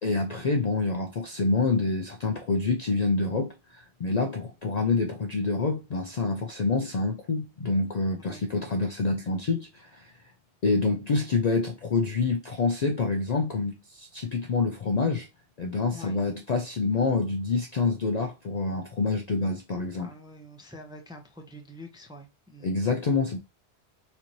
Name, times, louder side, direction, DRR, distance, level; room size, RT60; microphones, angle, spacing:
voice 1, 0.0-10.1 10.6-15.3 15.6-20.1 22.6-23.4, left 3 dB, 55° left, 0.5 m, -27 dB
voice 2, 20.0-22.7, left 1 dB, 5° right, 0.5 m, -46 dB
4.3 x 2.6 x 2.9 m
omnidirectional pair, 1.2 m